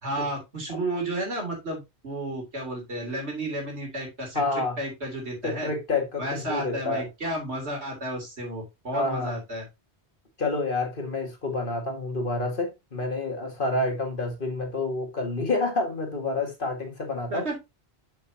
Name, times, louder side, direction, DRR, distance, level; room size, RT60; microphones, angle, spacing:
voice 1, 0.0-5.7 6.2-9.7 17.3-17.6, right 1 dB, 80° right, 3.5 m, -32 dB
voice 2, 4.3-4.8 5.4-7.0 8.9-9.4 10.4-17.4, left 2 dB, 55° left, 2.0 m, -28 dB
7.7 x 6.7 x 2.8 m
omnidirectional pair, 1.1 m